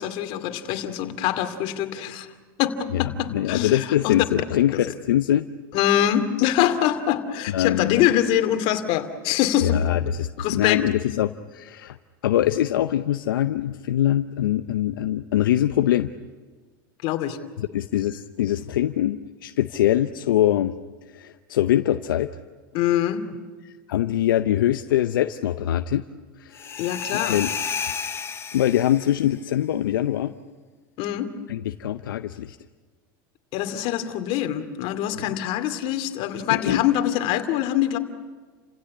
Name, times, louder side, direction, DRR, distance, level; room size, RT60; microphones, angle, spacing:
voice 1, 0.0-2.3 2.6-4.2 5.7-9.8 10.4-10.8 17.0-17.4 22.7-23.2 26.8-27.4 31.0-31.3 33.5-38.0, left 11 dB, 55° left, 8 dB, 2.5 m, -24 dB
voice 2, 3.3-5.5 7.5-8.1 9.6-12.0 12.2-16.1 17.6-20.8 21.1-22.3 23.9-26.0 26.4-26.8 27.1-27.5 28.5-30.3 31.5-32.6 36.5-36.8, left 12 dB, 85° left, 9 dB, 0.7 m, -23 dB
sound 1, 26.5-29.3, left 6 dB, 25° left, 1.4 m, -31 dB
30.0 x 16.5 x 9.8 m, 1.4 s
hypercardioid pair, 105°, 11 cm